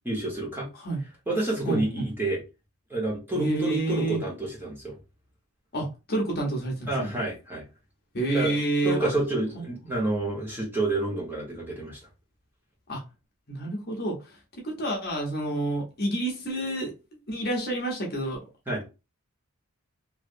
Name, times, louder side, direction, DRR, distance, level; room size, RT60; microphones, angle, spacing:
voice 1, 0.0-0.7 1.3-2.4 2.9-5.0 6.9-7.6 8.3-8.6 8.8-12.0 18.7-18.8, right 2 dB, 10° right, -3 dB, 1.2 m, -29 dB
voice 2, 1.6-2.0 3.4-4.2 5.7-7.1 8.1-9.1 12.9-13.0 13.5-14.4 14.6-16.9 17.3-18.4, right 2 dB, 45° left, -1 dB, 0.9 m, -28 dB
3.2 x 2.7 x 2.5 m, 0.28 s
head